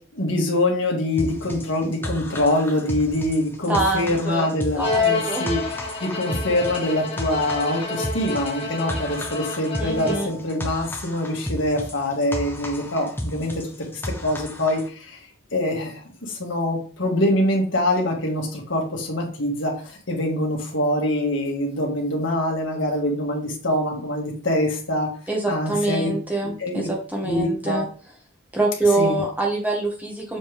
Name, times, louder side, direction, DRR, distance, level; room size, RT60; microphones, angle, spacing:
voice 1, 0.1-13.6 13.9-15.2 15.5-25.1 25.5-26.1 26.4-26.9 27.2-27.8 29.0-29.2, left 1 dB, 70° left, 0 dB, 2.0 m, -24 dB
sound 1, 1.2-14.9, equal, 10° left, 0.9 m, -33 dB
voice 2, 3.7-4.5 4.7-5.4 9.8-10.3 25.3-27.9 28.5-30.4, right 2 dB, 10° right, -1 dB, 1.3 m, -25 dB
Bowed string instrument, 4.8-10.5, left 3 dB, 30° left, 1.4 m, -28 dB
7.1 x 4.3 x 3.6 m, 0.39 s
head